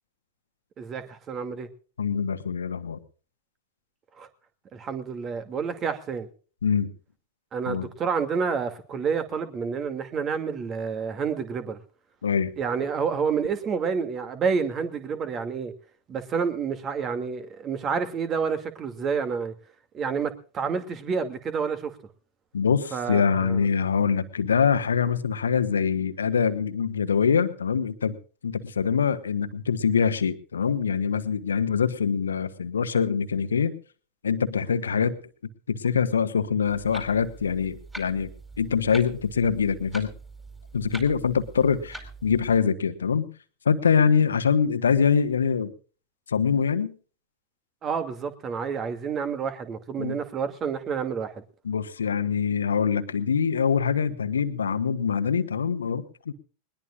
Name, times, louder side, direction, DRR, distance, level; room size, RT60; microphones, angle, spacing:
voice 1, 0.8-1.7 4.2-4.3 4.7-6.3 7.5-11.8 12.6-15.7 16.1-19.5 19.9-22.0 22.9-23.7 47.8-51.4, right 6 dB, 25° right, 2.5 m, -29 dB
voice 2, 2.0-3.0 6.6-6.9 7.7-7.9 12.2-12.5 22.5-28.2 28.4-33.7 34.2-35.2 35.7-38.3 38.6-40.1 40.7-43.3 43.6-45.7 46.3-46.9 50.0-50.2 51.6-56.3, left 6 dB, 70° left, 1.5 m, -24 dB
Clock, 36.7-42.6, right 2 dB, 5° right, 4.8 m, -44 dB
21.0 x 21.0 x 2.5 m
figure-of-eight pair, 90°, 0 cm